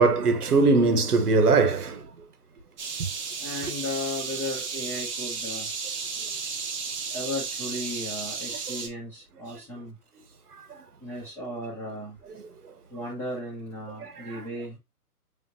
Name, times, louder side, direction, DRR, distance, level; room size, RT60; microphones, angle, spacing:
voice 1, 0.0-2.0 14.0-14.4, right 3 dB, 75° right, 1.2 m, -21 dB
sound 1, 2.8-8.9, right 5 dB, 30° right, 1.0 m, -33 dB
voice 2, 3.4-5.7 7.1-9.9 11.0-12.2 12.9-14.8, left 1 dB, 5° left, 0.9 m, -35 dB
5.5 x 3.5 x 2.7 m
hypercardioid pair, 145°, 46 cm